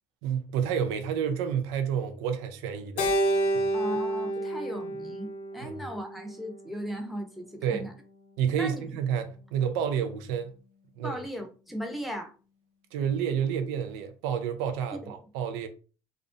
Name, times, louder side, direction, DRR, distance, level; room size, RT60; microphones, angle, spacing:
voice 1, 0.2-3.1 3.5-3.7 5.6-5.7 7.6-7.9 8.4-10.5 11.0-11.2 12.9-15.7, right 8 dB, 80° right, 0.4 m, -29 dB
Keyboard (musical), 3.0-7.4, right 1 dB, 65° left, 0.6 m, -30 dB
voice 2, 3.7-7.9 8.4-8.9 11.0-12.3 15.0-15.2, equal, ahead, 0.7 m, -37 dB
2.4 x 2.1 x 2.5 m
hypercardioid pair, 70°, 13 cm